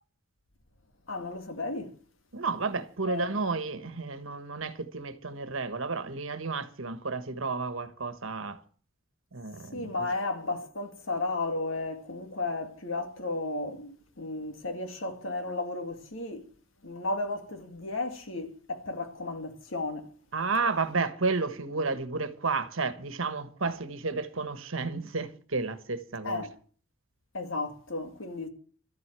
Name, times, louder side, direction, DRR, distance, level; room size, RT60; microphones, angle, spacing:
voice 1, 1.1-1.9 3.0-3.4 9.7-16.4 16.8-20.1 23.6-23.7 26.2-26.5 27.3-28.5, left 2 dB, 70° left, 2.2 m, -34 dB
voice 2, 2.3-8.6 9.3-9.9 20.3-26.5, right 4 dB, 75° right, 1.4 m, -32 dB
13.0 x 7.9 x 9.1 m
head